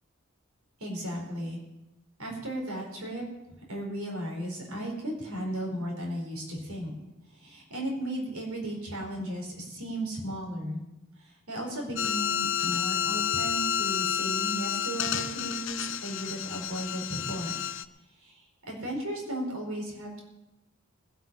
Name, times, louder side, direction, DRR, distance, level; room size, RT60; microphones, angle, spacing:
voice 1, 0.8-1.6 2.2-3.2 3.7-6.9 7.3-10.8 11.2-17.5 18.2-20.2, right 1 dB, 90° right, -1 dB, 4.6 m, -35 dB
sound 1, 12.0-17.8, left 9 dB, 60° left, 0.6 m, -30 dB
20.5 x 8.3 x 5.6 m, 0.97 s
head